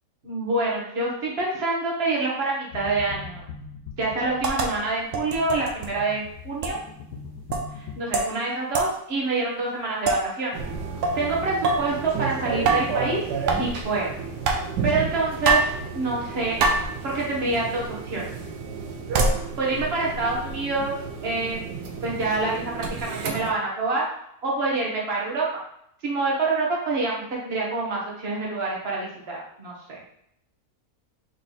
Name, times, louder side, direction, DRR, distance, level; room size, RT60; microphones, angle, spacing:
voice 1, 0.2-3.5 4.0-6.8 7.7-10.5 11.1-13.3 13.6-14.2 14.8-16.6 17.0-18.3 19.6-20.9 21.2-21.7 22.0-24.0 24.4-25.5 26.0-30.0, right 3 dB, 40° right, -3 dB, 1.4 m, -26 dB
sound 1, 2.7-8.0, left 5 dB, 75° left, 1.2 m, -41 dB
sound 2, 4.4-4.7 5.1-5.9 6.6-6.8 7.5-7.7 8.1-8.3 8.7-8.9 10.0-10.3 11.0-11.2 11.6-11.9 12.6-13.0 13.5-13.7 14.5-14.7 15.4-15.8 16.6-16.9 17.5-17.6 19.1-19.4, right 3 dB, 60° right, 0.9 m, -23 dB
sound 3, 10.5-23.5, right 5 dB, 90° right, 1.3 m, -33 dB
3.9 x 3.2 x 4.1 m, 0.73 s
omnidirectional pair, 1.7 m